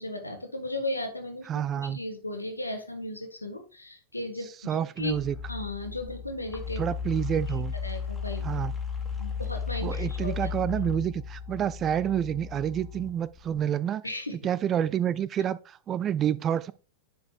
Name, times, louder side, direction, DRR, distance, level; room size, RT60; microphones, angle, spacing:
voice 1, 0.0-5.1 5.5-6.8 7.8-8.5 9.2-10.5 14.0-14.3, left 1 dB, 85° left, 1.4 m, -36 dB
voice 2, 1.5-2.0 4.7-5.4 6.8-7.7 8.4-8.7 9.8-14.0 14.4-16.7, right 9 dB, 25° right, 0.3 m, -28 dB
sound 1, 5.0-13.6, left 6 dB, 10° left, 1.9 m, -35 dB
10.0 x 5.3 x 2.3 m
figure-of-eight pair, 90°, 0 cm